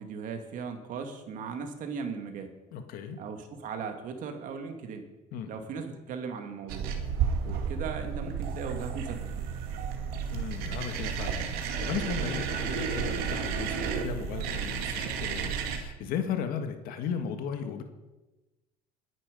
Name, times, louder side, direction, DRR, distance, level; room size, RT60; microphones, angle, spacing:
voice 1, 0.0-2.5 3.2-5.1 5.5-6.9 7.4-9.4, right 5 dB, 60° right, 6 dB, 2.3 m, -38 dB
voice 2, 2.7-3.2 5.3-5.5 10.3-17.8, left 7 dB, 70° left, 7 dB, 1.7 m, -36 dB
sound 1, 6.7-15.8, right 6 dB, 80° right, 2.3 m, -32 dB
21.5 x 10.5 x 5.3 m, 1.1 s
cardioid pair, 125°, 16 cm